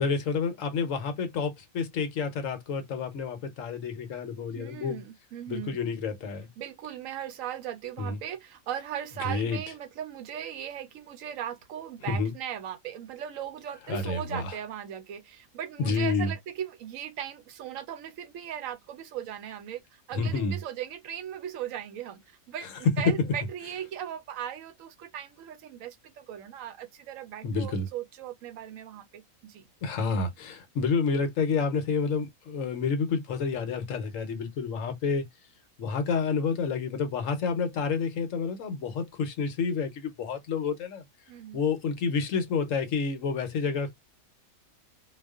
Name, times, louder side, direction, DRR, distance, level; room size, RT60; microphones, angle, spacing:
voice 1, 0.0-5.0 5.5-6.5 8.0-8.2 9.2-9.6 12.1-12.3 13.9-14.5 15.8-16.3 20.1-20.6 23.0-23.1 27.4-27.9 29.8-35.2 35.8-41.0 41.5-43.9, left 5 dB, 70° left, 1.1 m, -29 dB
voice 2, 4.5-5.9 6.6-29.7 41.3-41.6, right 10 dB, 75° right, 0.9 m, -38 dB
2.4 x 2.3 x 2.3 m
omnidirectional pair, 1.5 m